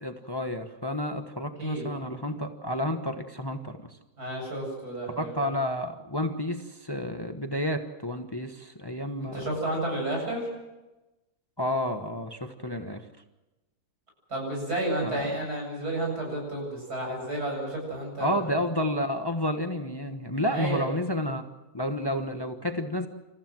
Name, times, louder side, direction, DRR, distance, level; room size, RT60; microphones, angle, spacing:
voice 1, 0.0-3.9 5.1-9.5 11.6-13.0 15.0-15.3 18.2-23.1, left 1 dB, 15° left, 6 dB, 1.1 m, -30 dB
voice 2, 4.2-5.5 9.2-10.5 14.3-18.3 20.5-20.8, right 1 dB, 85° right, 0 dB, 8.7 m, -31 dB
28.0 x 15.0 x 7.6 m, 1.1 s
omnidirectional pair, 1.6 m